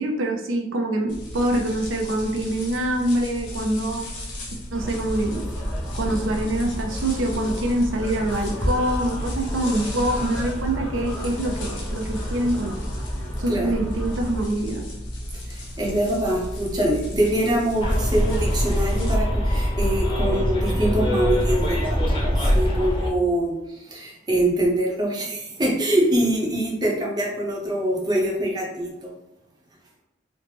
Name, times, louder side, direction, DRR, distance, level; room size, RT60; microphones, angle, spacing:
voice 1, 0.0-4.1 4.7-5.5 5.9-12.7 13.4-14.8, right 1 dB, 90° right, 3 dB, 0.4 m, -25 dB
sound 1, 1.1-19.1, equal, 75° left, 0.7 m, -35 dB
sound 2, 4.7-14.5, equal, 5° left, 0.9 m, -31 dB
voice 2, 13.5-13.8 15.5-29.1, right 1 dB, 20° right, -3 dB, 0.6 m, -24 dB
Bus, 17.8-23.1, equal, 25° left, 0.5 m, -22 dB
3.0 x 2.0 x 3.2 m, 0.92 s
head